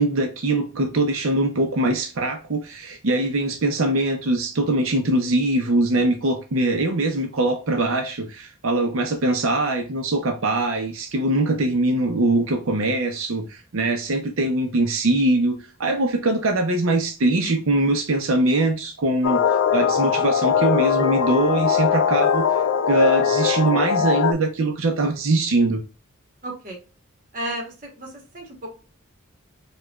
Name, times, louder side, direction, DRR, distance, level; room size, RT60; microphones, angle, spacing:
voice 1, 0.0-19.4 19.7-22.5 22.9-25.8, right 2 dB, 65° right, 0.6 m, -22 dB
sound 1, 19.2-24.3, left 7 dB, 65° left, 0.3 m, -20 dB
voice 2, 26.4-26.8 27.3-28.5, right 1 dB, 40° right, 1.1 m, -33 dB
4.9 x 2.3 x 2.3 m
head